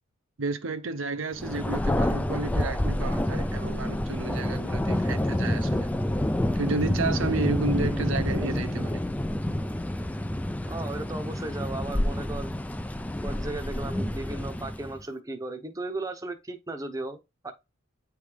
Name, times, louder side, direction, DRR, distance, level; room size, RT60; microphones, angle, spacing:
voice 1, 0.4-5.9 6.5-9.1, right 3 dB, 75° right, 0.7 m, -32 dB
Thunder, 1.4-15.0, left 1 dB, 5° left, 0.3 m, -28 dB
voice 2, 10.7-12.5 13.2-17.5, right 2 dB, 15° right, 0.8 m, -36 dB
9.0 x 3.4 x 3.4 m
head